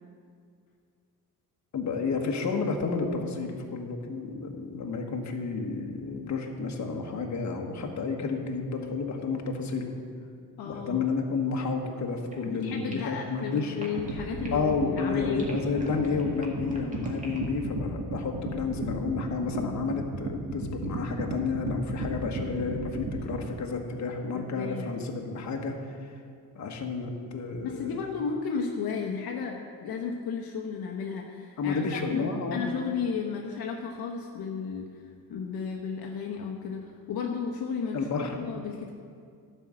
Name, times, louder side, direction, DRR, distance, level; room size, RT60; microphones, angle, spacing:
voice 1, 1.7-9.9 10.6-13.8 14.5-26.1 26.5-28.0 31.6-32.7 37.9-38.4, left 4 dB, 50° left, 2 dB, 1.4 m, -31 dB
voice 2, 10.6-11.0 12.4-15.4 24.3-24.9 27.6-34.9 35.3-38.9, left 6 dB, 70° left, 1 dB, 1.0 m, -34 dB
sound 1, 12.3-14.7 15.0-17.6, right 1 dB, 20° right, 2.0 m, -47 dB
sound 2, 14.0-23.5, right 2 dB, 50° right, 1.7 m, -34 dB
12.0 x 5.5 x 7.5 m, 2.2 s
cardioid pair, 125°, 38 cm